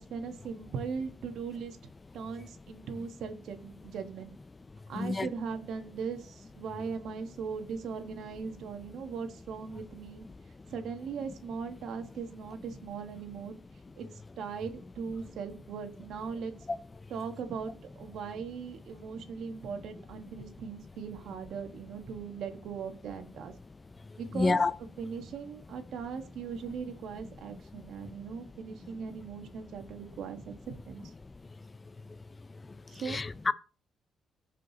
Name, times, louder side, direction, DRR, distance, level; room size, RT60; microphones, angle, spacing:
voice 1, 0.0-1.8 2.1-4.3 4.9-10.2 10.7-13.6 14.0-14.1 14.4-16.5 17.1-23.5 24.2-31.0 32.9-33.2, right 6 dB, 75° right, 1.4 m, -39 dB
voice 2, 24.4-24.7 33.1-33.5, left 3 dB, 25° left, 0.5 m, -27 dB
15.0 x 5.1 x 2.9 m
cardioid pair, 90°, 0 cm